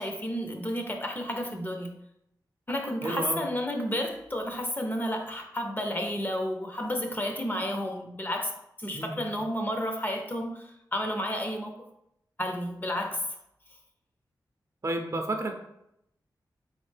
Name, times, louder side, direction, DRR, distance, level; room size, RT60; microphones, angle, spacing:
voice 1, 0.0-2.0 2.7-8.5 8.8-11.7 12.4-13.2, equal, 25° left, 3 dB, 0.6 m, -31 dB
voice 2, 3.0-3.4 8.9-9.3 14.8-15.5, right 2 dB, 40° right, 3 dB, 0.6 m, -31 dB
3.8 x 3.2 x 3.3 m, 0.79 s
wide cardioid pair, 90°, 8 cm